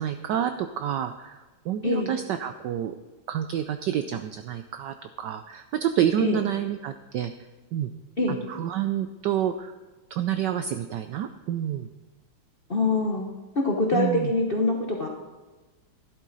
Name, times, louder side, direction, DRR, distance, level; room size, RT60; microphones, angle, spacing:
voice 1, 0.0-3.0 3.3-7.3 7.7-7.9 8.5-9.7 10.1-11.9 13.9-14.3, right 10 dB, 80° right, 9 dB, 1.0 m, -28 dB
voice 2, 1.8-2.1 6.2-6.4 8.2-8.4 12.7-13.3 13.5-15.1, left 2 dB, 40° left, 1 dB, 0.8 m, -24 dB
12.0 x 11.5 x 4.0 m, 1.2 s
omnidirectional pair, 2.4 m